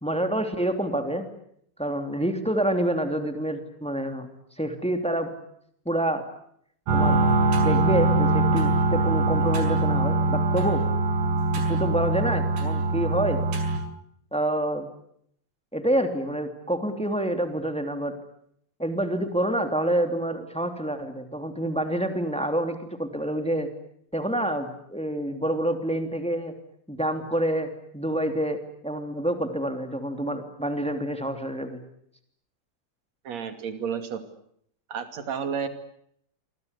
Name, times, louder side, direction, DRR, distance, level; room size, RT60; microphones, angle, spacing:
voice 1, 0.0-1.2 1.8-4.3 4.6-5.3 5.8-6.2 6.9-7.2 7.6-10.8 11.6-13.4 14.3-14.9 15.7-18.1 18.8-23.7 24.1-26.5 26.9-27.7 27.9-31.8, right 1 dB, ahead, 7 dB, 1.5 m, -27 dB
sound 1, 6.9-13.8, right 2 dB, 65° right, 7.7 m, -23 dB
voice 2, 33.2-34.2 34.9-35.7, right 7 dB, 45° right, 9 dB, 3.1 m, -31 dB
28.5 x 24.0 x 8.3 m, 0.69 s
omnidirectional pair, 5.5 m